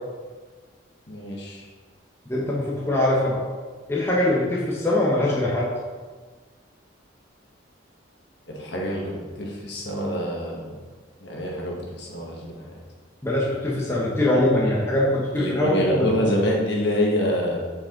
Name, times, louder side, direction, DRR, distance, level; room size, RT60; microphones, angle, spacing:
voice 1, 1.1-1.6 8.5-10.7 11.2-12.6 14.3-14.4 15.3-17.6, equal, 60° left, -2 dB, 1.6 m, -26 dB
voice 2, 2.3-3.4 3.9-5.7 13.2-16.1, left 1 dB, 15° left, -5 dB, 1.0 m, -22 dB
8.1 x 5.0 x 3.9 m, 1.4 s
head